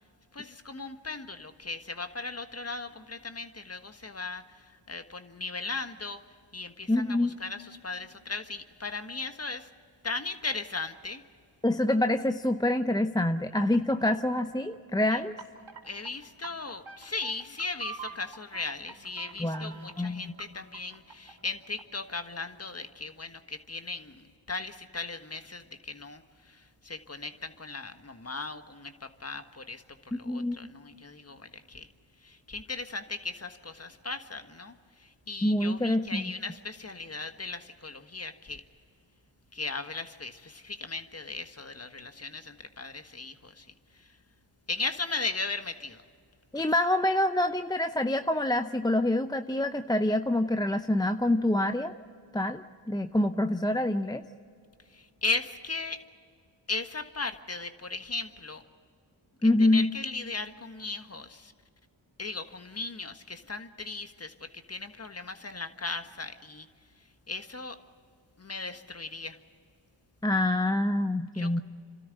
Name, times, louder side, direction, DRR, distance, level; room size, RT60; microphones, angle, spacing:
voice 1, 0.3-6.2 6.5-9.7 10.0-11.2 15.1-15.2 15.8-31.9 32.2-34.7 35.0-38.6 39.5-43.7 44.7-46.0 46.5-46.6 54.9-56.0 56.7-58.6 59.4-61.5 62.2-66.7 67.3-67.8 68.4-69.4 71.3-71.6, left 3 dB, 30° left, 8 dB, 1.6 m, -37 dB
voice 2, 6.9-7.4 11.6-15.3 19.4-20.3 30.3-30.7 35.4-36.3 46.5-51.9 52.3-54.2 59.4-59.9 70.2-71.6, left 1 dB, 10° left, 8 dB, 0.7 m, -26 dB
sound 1, 13.4-14.8 15.3-16.1 16.4-22.1, right 5 dB, 75° right, 3.3 m, -45 dB
29.0 x 13.0 x 9.9 m, 2.2 s
cardioid pair, 45°, 49 cm